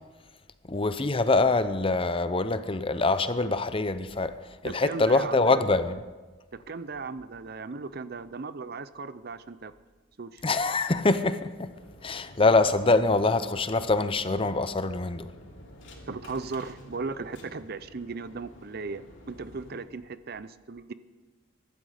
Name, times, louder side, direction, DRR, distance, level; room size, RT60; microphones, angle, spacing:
voice 1, 0.7-4.4 4.6-6.0 10.4-11.7 12.0-15.3, left 3 dB, 25° left, 0.6 m, -24 dB
voice 2, 4.6-5.6 6.5-9.7 10.2-10.4 16.1-20.9, right 4 dB, 50° right, 0.6 m, -37 dB
sound 1, 11.7-19.8, equal, 60° left, 2.9 m, -50 dB
23.0 x 12.0 x 5.0 m
head